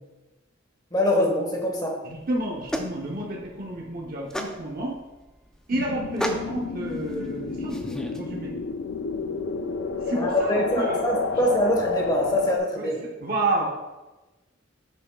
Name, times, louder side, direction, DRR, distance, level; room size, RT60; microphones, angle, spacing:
voice 1, 0.9-2.0 10.1-13.0, equal, 20° left, 0 dB, 1.3 m, -24 dB
voice 2, 2.0-5.0 5.7-8.5 10.0-11.0 11.3-11.4 12.7-12.9 13.2-13.7, right 2 dB, 50° right, -3 dB, 0.8 m, -30 dB
sound 1, 2.1-8.2, equal, 5° left, 0.4 m, -35 dB
sound 2, 5.7-12.6, left 4 dB, 75° left, 0.4 m, -30 dB
8.3 x 6.1 x 2.3 m, 1.1 s
head